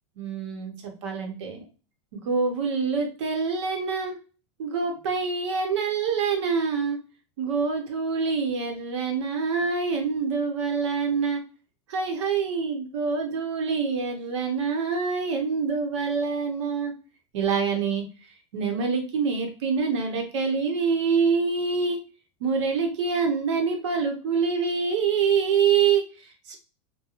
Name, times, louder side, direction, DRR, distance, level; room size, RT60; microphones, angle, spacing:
voice 1, 0.2-1.6 2.2-4.2 4.6-7.0 7.4-11.4 11.9-16.9 17.3-18.0 18.5-22.0 22.4-26.6, right 5 dB, 75° right, 3 dB, 0.9 m, -26 dB
2.4 x 2.2 x 2.9 m, 0.36 s
supercardioid pair, 170°, 15 cm